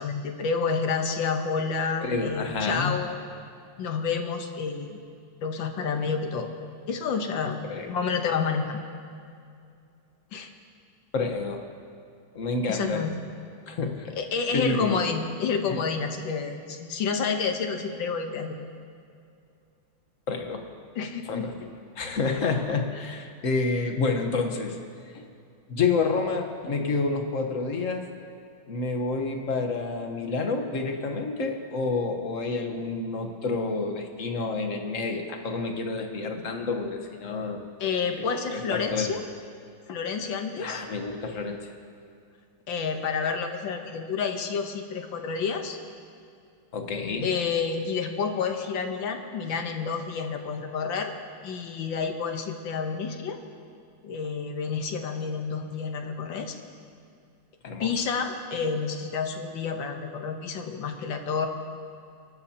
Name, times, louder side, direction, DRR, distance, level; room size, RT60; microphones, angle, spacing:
voice 1, 0.0-3.1 3.8-5.0 5.4-6.5 6.9-7.6 7.9-8.8 10.3-10.5 12.7-13.1 14.2-18.6 21.0-21.5 37.8-39.2 39.9-40.8 42.7-45.8 47.2-51.1 51.4-53.4 54.0-56.6 57.8-61.5, left 5 dB, 70° left, 5 dB, 1.7 m, -29 dB
voice 2, 2.0-3.0 7.6-7.9 11.1-11.6 12.3-13.0 13.7-14.1 14.5-15.0 15.6-15.8 20.3-20.6 21.3-21.5 22.0-24.8 25.1-25.3 25.7-28.0 28.7-37.6 38.2-39.1 40.6-41.6 46.7-47.3 57.6-58.0, left 3 dB, 45° left, 4 dB, 1.3 m, -29 dB
26.5 x 13.0 x 2.9 m, 2.4 s
omnidirectional pair, 2.3 m